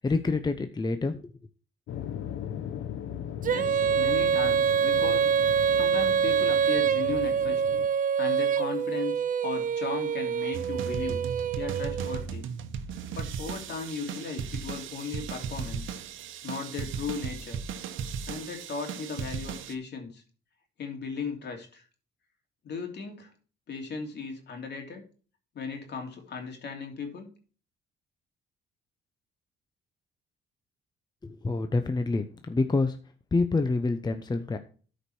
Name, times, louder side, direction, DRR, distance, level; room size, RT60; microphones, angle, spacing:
voice 1, 0.0-1.3 31.2-33.0 33.3-34.6, left 3 dB, 20° left, 8 dB, 0.8 m, -27 dB
sound 1, 1.9-7.9, left 9 dB, 75° left, 1.0 m, -38 dB
Female singing, 3.4-12.2, right 7 dB, 45° right, 0.5 m, -26 dB
voice 2, 3.5-5.3 5.7-7.6 8.2-11.2 11.5-12.5 13.1-15.9 16.4-17.6 18.2-20.2 20.8-21.8 22.6-23.3 23.7-25.0 25.5-27.3, left 5 dB, 60° left, 3 dB, 3.0 m, -36 dB
sound 2, 10.5-19.7, right 7 dB, 80° right, 1.0 m, -36 dB
13.0 x 5.2 x 4.4 m, 0.39 s
cardioid pair, 90°, 20 cm